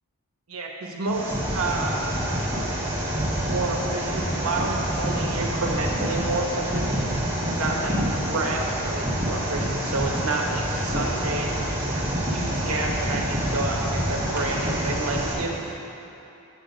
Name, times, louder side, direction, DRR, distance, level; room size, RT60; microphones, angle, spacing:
voice 1, 0.5-2.3 3.4-6.9 7.5-11.5 12.3-15.8, right 2 dB, 75° right, 0 dB, 1.1 m, -29 dB
sound 1, 1.0-15.3, right 1 dB, 10° right, 1.1 m, -27 dB
7.0 x 6.9 x 5.2 m, 2.9 s
head